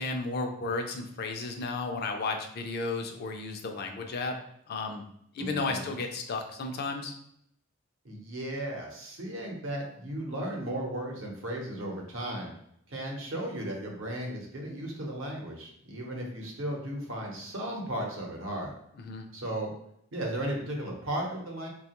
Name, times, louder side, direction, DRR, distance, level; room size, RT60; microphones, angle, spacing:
voice 1, 0.0-4.3 4.7-5.0 5.3-7.1 19.1-19.3, left 3 dB, 50° left, 4 dB, 0.4 m, -33 dB
voice 2, 5.4-5.9 8.0-12.5 12.9-18.7 19.3-19.7 20.1-21.7, right 1 dB, 70° right, 0 dB, 0.8 m, -35 dB
2.8 x 2.3 x 2.9 m, 0.72 s
head